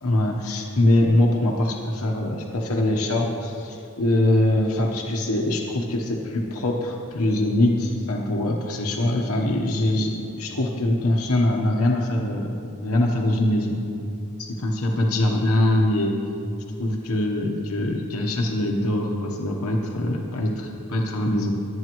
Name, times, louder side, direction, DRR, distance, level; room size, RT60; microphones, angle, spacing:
voice 1, 0.0-13.8 14.4-16.1 16.8-21.6, left 1 dB, 75° left, 0 dB, 1.0 m, -23 dB
20.5 x 8.9 x 3.0 m, 2.6 s
head